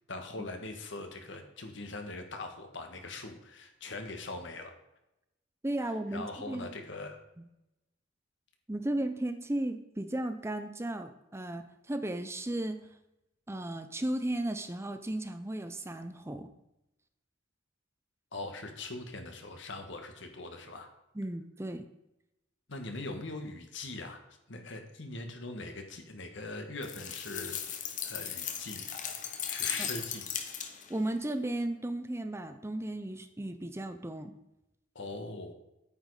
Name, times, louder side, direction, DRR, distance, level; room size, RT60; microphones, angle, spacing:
voice 1, 0.1-4.7 6.1-7.2 18.3-20.9 22.7-24.2 24.5-27.6 28.0-28.9 29.5-30.2 34.9-35.5, left 2 dB, 65° left, 5 dB, 1.6 m, -41 dB
voice 2, 5.6-6.7 8.7-12.8 13.5-16.5 21.1-21.9 29.8-29.9 30.9-34.3, right 1 dB, 15° right, 9 dB, 0.6 m, -35 dB
sound 1, 26.8-31.0, left 8 dB, 40° left, 1.1 m, -37 dB
9.2 x 8.8 x 4.9 m, 0.88 s
head